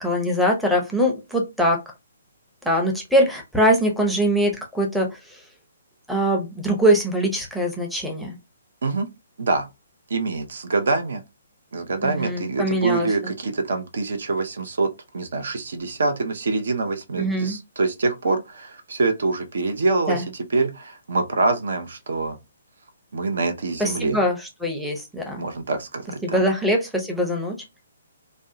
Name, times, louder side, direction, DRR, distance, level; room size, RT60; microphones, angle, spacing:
voice 1, 0.0-1.8 2.6-5.4 6.1-8.4 12.0-13.1 17.2-17.6 20.1-20.2 23.8-25.4 26.2-27.6, equal, ahead, 0.6 m, -22 dB
voice 2, 10.1-11.2 11.7-14.9 15.1-22.4 23.1-24.2 25.4-26.4, right 3 dB, 60° right, 0.5 m, -25 dB
2.5 x 2.0 x 2.5 m
figure-of-eight pair, 130°, 0 cm